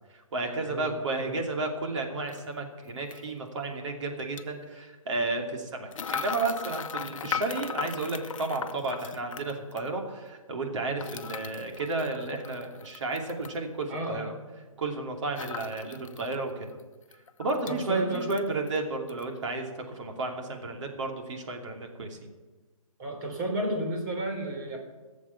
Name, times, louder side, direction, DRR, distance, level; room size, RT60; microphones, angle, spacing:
voice 1, 0.1-14.3 14.8-16.7 17.4-22.3, right 3 dB, 55° right, 2 dB, 2.7 m, -32 dB
voice 2, 0.6-1.4 13.9-14.3 17.7-18.3 23.0-24.8, right 1 dB, 35° right, 1 dB, 3.7 m, -33 dB
sound 1, 2.3-2.4 3.1-3.2 4.2-4.4 5.9-9.9 11.0-13.6 15.3-16.4 16.7-16.8 17.1-17.8 18.1-18.8 19.1-19.3, left 7 dB, 65° left, 0.8 m, -37 dB
17.0 x 7.3 x 7.1 m, 1.3 s
hypercardioid pair, 150°, 18 cm